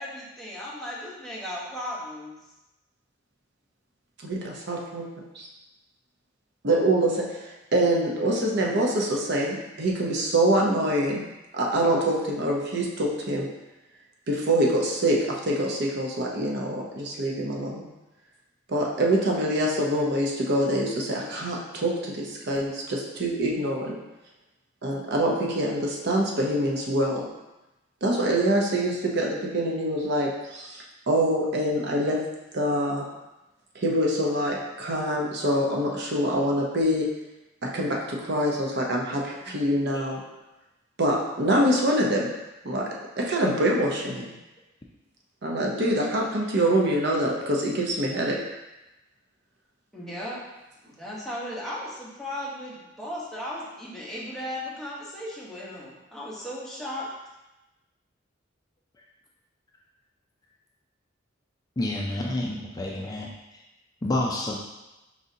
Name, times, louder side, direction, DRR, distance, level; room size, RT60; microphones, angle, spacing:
voice 1, 0.0-2.4 49.9-50.4 50.8-57.1, left 1 dB, ahead, -7 dB, 1.0 m, -36 dB
voice 2, 4.2-5.0 5.3-5.5 6.6-11.2 11.5-13.5 14.3-15.2 15.4-17.8 18.7-24.0 24.8-27.2 28.0-32.2 32.5-33.1 33.7-37.0 37.7-40.2 41.0-42.3 42.6-42.8 43.2-44.2 45.4-48.4, right 1 dB, 60° right, -1 dB, 0.7 m, -25 dB
voice 3, 61.8-63.3 64.0-64.6, left 1 dB, 20° left, -2 dB, 0.4 m, -29 dB
4.7 x 3.8 x 2.7 m, 1.0 s
head